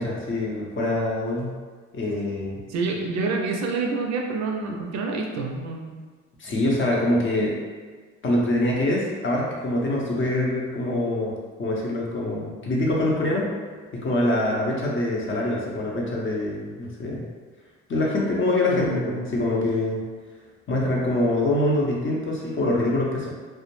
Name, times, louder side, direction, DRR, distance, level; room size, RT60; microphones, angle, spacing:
voice 1, 0.0-1.6 1.9-2.6 6.4-7.6 8.2-13.5 13.9-17.2 17.9-20.0 20.7-23.3, left 1 dB, 40° left, -3 dB, 0.6 m, -24 dB
voice 2, 2.7-5.9 18.7-19.3, right 3 dB, 65° right, 1 dB, 0.5 m, -27 dB
2.2 x 2.0 x 3.0 m, 1.5 s
cardioid pair, 90°, 30 cm